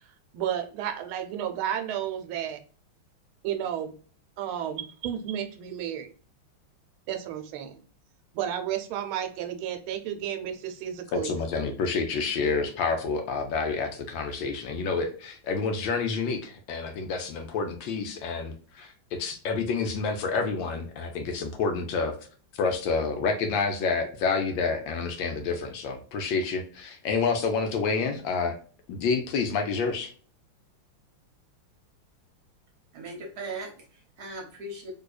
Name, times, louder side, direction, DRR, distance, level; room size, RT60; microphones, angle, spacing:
voice 1, 0.3-2.6 3.4-3.9 4.4-6.1 7.1-7.8 8.3-11.3, right 10 dB, 85° right, 6 dB, 1.5 m, -32 dB
voice 2, 11.1-18.9 19.2-22.1 22.6-28.5 28.9-30.1, left 4 dB, 75° left, 5 dB, 1.3 m, -28 dB
voice 3, 32.9-34.9, right 2 dB, 60° right, 1 dB, 1.2 m, -39 dB
3.7 x 2.7 x 2.3 m, 0.41 s
omnidirectional pair, 2.3 m